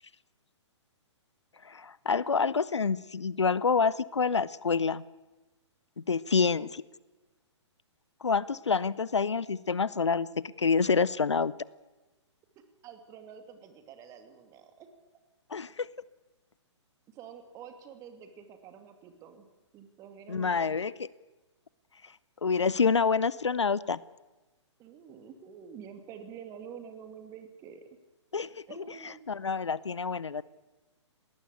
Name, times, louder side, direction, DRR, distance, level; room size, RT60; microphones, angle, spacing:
voice 1, 1.6-5.0 6.1-6.8 8.2-10.3 10.6-11.5 15.5-15.9 20.3-20.9 22.4-24.0 28.3-28.5 28.8-30.4, left 5 dB, 70° left, 21 dB, 0.7 m, -27 dB
voice 2, 6.3-6.7 12.8-14.9 17.1-19.5 19.7-20.8 24.8-27.8 28.7-29.3, right 7 dB, 20° right, 8 dB, 2.5 m, -48 dB
20.5 x 19.0 x 8.3 m, 1.2 s
figure-of-eight pair, 120°, 15 cm